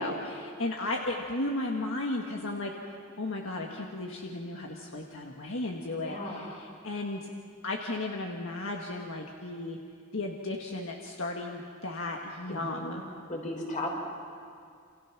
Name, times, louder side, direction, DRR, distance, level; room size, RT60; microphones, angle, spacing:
voice 1, 0.0-2.7 3.2-7.3 7.6-9.8 10.1-13.0, left 2 dB, 65° left, 1 dB, 1.7 m, -34 dB
voice 2, 6.0-6.7 12.5-13.9, left 1 dB, 40° left, -1 dB, 5.9 m, -37 dB
29.0 x 27.0 x 6.1 m, 2.3 s
head